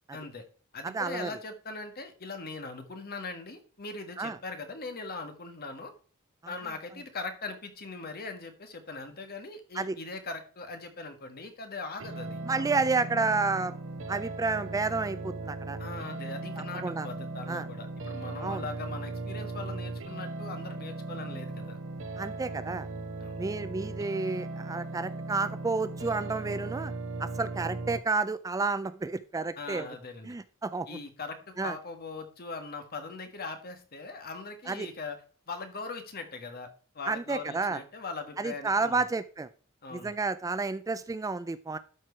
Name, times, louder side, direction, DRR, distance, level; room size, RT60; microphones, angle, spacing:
voice 1, 0.1-0.4 0.7-5.9 6.5-12.8 15.8-21.8 23.2-23.5 29.6-30.4 30.9-35.2 35.5-36.7 36.9-39.0 39.8-40.1, left 3 dB, 45° left, 7 dB, 1.5 m, -40 dB
voice 2, 0.8-1.3 4.2-4.4 9.8-10.0 12.4-13.7 14.1-15.8 16.8-17.1 17.5-17.7 18.4-18.6 22.2-22.9 23.4-26.9 27.2-29.9 30.2-31.0 31.6-31.8 34.7-34.9 37.1-37.8 38.4-39.5 39.9-41.8, right 3 dB, 15° right, 13 dB, 0.3 m, -30 dB
sound 1, 12.0-28.0, right 2 dB, 65° right, 1.0 m, -38 dB
12.0 x 4.6 x 4.4 m, 0.40 s
head